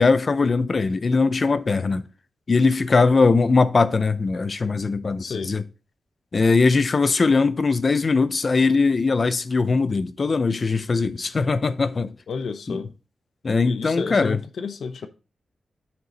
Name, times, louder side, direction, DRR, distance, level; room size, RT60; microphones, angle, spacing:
voice 1, 0.0-2.0 2.5-5.6 6.3-12.1 12.7-12.9 13.4-14.4, left 4 dB, 40° left, 0.5 m, -20 dB
voice 2, 12.3-12.9 13.6-15.1, left 5 dB, 75° left, 0.8 m, -31 dB
9.5 x 4.5 x 3.9 m
wide cardioid pair, 145°, 0 cm